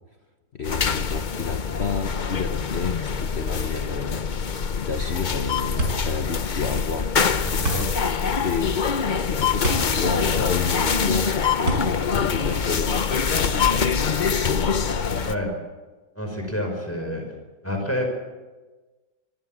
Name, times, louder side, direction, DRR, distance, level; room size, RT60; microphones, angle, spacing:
voice 1, 0.5-7.1 7.8-8.0 8.4-8.8 9.3-11.9 12.1-14.2 15.1-15.3, left 5 dB, 45° left, 6 dB, 1.0 m, -30 dB
sound 1, 0.6-15.3, left 6 dB, 75° left, 0.4 m, -24 dB
sound 2, 5.8-13.3, right 1 dB, 50° right, 5.4 m, -31 dB
voice 2, 7.4-7.9 15.2-15.5 16.1-17.2 17.6-18.1, left 1 dB, 5° left, 2 dB, 5.2 m, -28 dB
26.0 x 15.5 x 7.4 m, 1.2 s
omnidirectional pair, 2.1 m